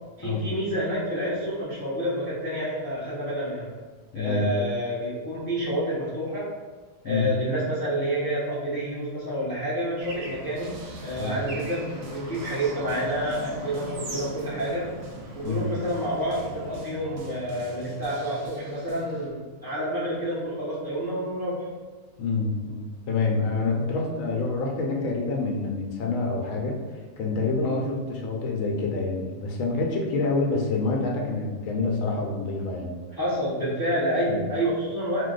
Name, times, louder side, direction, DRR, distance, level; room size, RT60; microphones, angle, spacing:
voice 1, 0.2-3.7 4.1-6.5 7.0-14.9 15.4-21.7 27.6-27.9 33.2-35.3, equal, 30° left, -9 dB, 0.4 m, -29 dB
voice 2, 4.1-4.5 7.0-7.3 11.2-11.4 15.4-15.7 22.2-26.7 27.2-32.9 34.3-34.4, left 3 dB, 75° left, 0 dB, 1.0 m, -27 dB
Bird / Traffic noise roadway noise, 10.0-16.8, right 1 dB, 60° right, 0.8 m, -40 dB
sound 1, 10.6-19.3, right 1 dB, 85° right, 1.0 m, -45 dB
2.5 x 2.2 x 3.8 m, 1.4 s
omnidirectional pair, 1.4 m